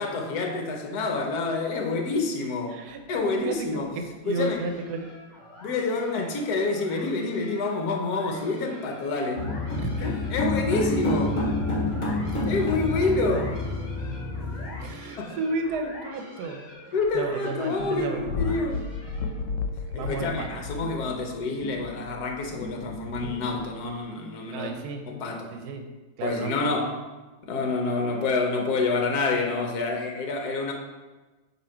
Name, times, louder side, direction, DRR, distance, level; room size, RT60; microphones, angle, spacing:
voice 1, 0.0-2.8 3.1-3.9 4.3-4.6 5.6-9.4 10.0-11.5 12.5-13.6 15.2-15.3 16.9-18.8 19.9-24.7 25.1-25.5 26.2-26.9 27.4-30.7, left 3 dB, 70° left, 3 dB, 1.3 m, -28 dB
voice 2, 2.7-5.1 6.2-6.3 9.8-10.0 14.8-18.3 19.9-20.5 24.5-25.0 25.5-25.8 26.2-26.7, right 3 dB, 70° right, 5 dB, 1.2 m, -33 dB
sound 1, 4.4-19.5, left 1 dB, 35° left, 0.8 m, -46 dB
sound 2, 9.4-14.8, left 2 dB, 50° left, 1.5 m, -28 dB
sound 3, 17.8-24.0, left 4 dB, 85° left, 1.3 m, -34 dB
8.2 x 2.9 x 4.4 m, 1.2 s
omnidirectional pair, 1.9 m